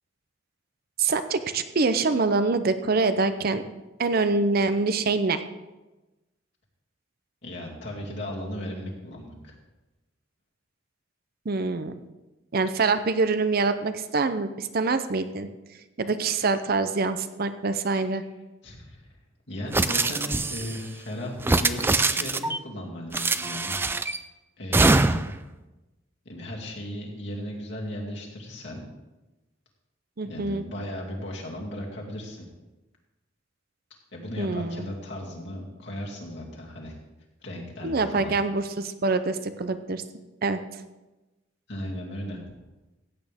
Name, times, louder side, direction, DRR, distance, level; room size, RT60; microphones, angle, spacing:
voice 1, 1.0-3.6 4.0-5.4 11.5-11.9 12.5-15.5 16.0-18.2 30.2-30.6 34.4-34.8 37.8-40.0 40.4-40.6, right 3 dB, 50° right, 10 dB, 0.6 m, -25 dB
voice 2, 7.4-9.5 17.9-18.0 18.6-19.1 19.5-23.7 24.6-25.1 26.2-28.8 30.2-32.5 34.1-36.9 37.4-38.3 41.7-42.4, left 1 dB, 60° left, -2 dB, 2.6 m, -36 dB
sound 1, 19.7-20.8 21.4-22.6 23.1-24.2 24.7-25.4, right 2 dB, 10° right, 0.3 m, -23 dB
15.5 x 8.4 x 3.6 m, 1.1 s
head